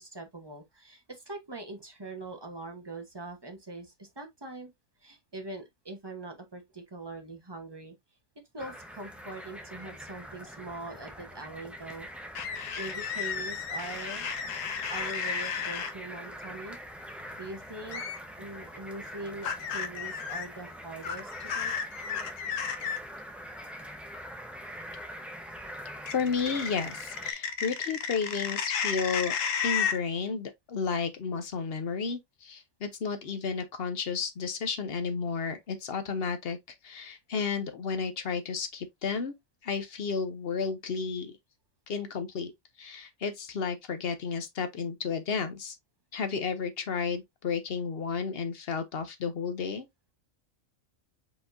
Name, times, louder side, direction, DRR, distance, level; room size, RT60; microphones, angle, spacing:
voice 1, 0.0-4.7 5.0-7.9 8.5-12.1 12.8-14.3 14.9-18.0 18.4-21.7, right 2 dB, 20° right, 0.9 m, -42 dB
sound 1, 8.6-27.3, equal, ahead, 0.4 m, -44 dB
sound 2, 12.4-15.9 17.9-18.2 19.4-20.5 21.0-23.0 26.1-30.0, left 7 dB, 75° left, 1.1 m, -33 dB
voice 2, 26.1-29.4 29.6-36.6 36.8-39.3 39.6-41.3 41.9-42.5 42.8-45.8 46.1-49.9, left 5 dB, 55° left, 0.8 m, -32 dB
4.8 x 4.0 x 2.5 m
omnidirectional pair, 1.4 m